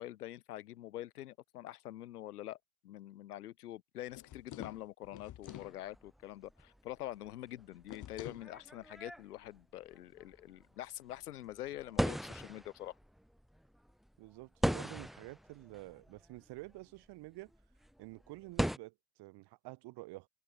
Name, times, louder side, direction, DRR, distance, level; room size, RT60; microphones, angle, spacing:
voice 1, 0.0-2.6 2.8-12.9, left 14 dB, 85° left, 2.8 m, -45 dB
sound 1, 4.1-5.8 7.9-8.5, left 12 dB, 40° left, 2.0 m, -48 dB
sound 2, 5.5-18.8, equal, ahead, 2.1 m, -41 dB
voice 2, 14.2-17.5 18.0-20.3, right 21 dB, 60° right, 6.7 m, -49 dB
hypercardioid pair, 85°, 45 cm